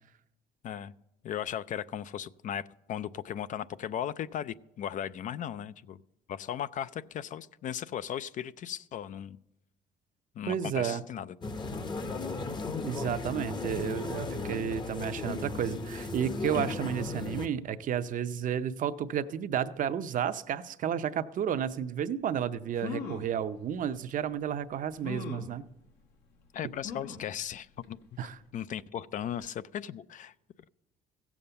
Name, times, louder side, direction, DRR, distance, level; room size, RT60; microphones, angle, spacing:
voice 1, 1.2-6.0 6.3-9.4 10.4-11.4 26.5-28.0 28.5-30.3, left 10 dB, 50° left, 16 dB, 0.4 m, -37 dB
voice 2, 10.5-11.0 12.8-25.6 28.2-28.4, right 9 dB, 50° right, 11 dB, 0.6 m, -32 dB
sound 1, 11.4-17.4, left 3 dB, 25° left, 0.8 m, -35 dB
sound 2, 22.3-22.4 22.8-23.3 24.1-24.2 25.0-25.5 26.8-27.3 27.8-27.9 28.2-28.3, left 5 dB, 80° left, 1.6 m, -39 dB
15.5 x 7.1 x 6.8 m, 0.88 s
cardioid pair, 110°, 17 cm